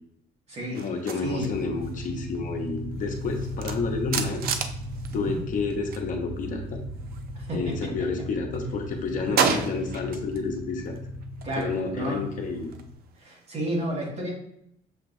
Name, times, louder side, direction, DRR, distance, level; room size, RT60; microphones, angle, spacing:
sound 1, 0.7-6.1 6.3-8.0 8.4-10.5 10.8-13.6, right 7 dB, 65° right, 0.5 m, -34 dB
voice 1, 0.8-4.5 5.1-6.8 7.5-11.0 11.6-12.7, left 4 dB, 50° left, 2 dB, 0.8 m, -30 dB
sound 2, 1.3-12.9, left 1 dB, 5° left, 1.0 m, -37 dB
voice 2, 9.2-9.6 11.4-12.3 13.2-14.3, right 1 dB, 40° right, -2 dB, 1.8 m, -31 dB
6.6 x 2.9 x 2.6 m, 0.74 s
cardioid pair, 110°, 17 cm